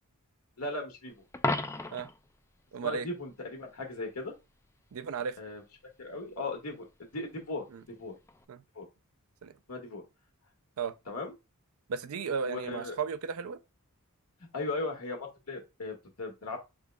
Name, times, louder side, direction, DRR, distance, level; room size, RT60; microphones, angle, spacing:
voice 1, 0.6-1.1 2.8-4.3 5.4-5.6 6.0-6.9 7.1-8.1 8.7-8.9 9.7-10.0 11.1-11.3 12.4-13.0 14.5-16.6, left 2 dB, 75° left, 1.6 m, -37 dB
Coin (dropping), 1.3-2.2 8.3-8.4, left 2 dB, 10° left, 0.4 m, -32 dB
voice 2, 2.7-3.1 4.9-5.4 7.7-7.8 8.5-8.6 9.4-9.5 10.8-10.9 11.9-13.6, right 6 dB, 70° right, 0.4 m, -34 dB
4.8 x 3.7 x 2.2 m
head